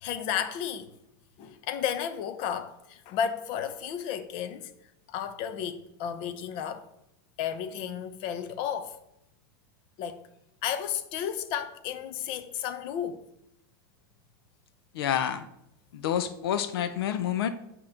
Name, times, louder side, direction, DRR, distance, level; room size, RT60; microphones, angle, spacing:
voice 1, 0.0-0.9 1.4-4.7 5.1-6.9 7.4-9.0 10.0-10.2 10.6-13.3, left 9 dB, 45° left, 0.7 m, -33 dB
voice 2, 14.9-15.5 15.9-17.5, left 10 dB, 85° left, 0.6 m, -28 dB
8.2 x 3.0 x 6.4 m
supercardioid pair, 150°, 12 cm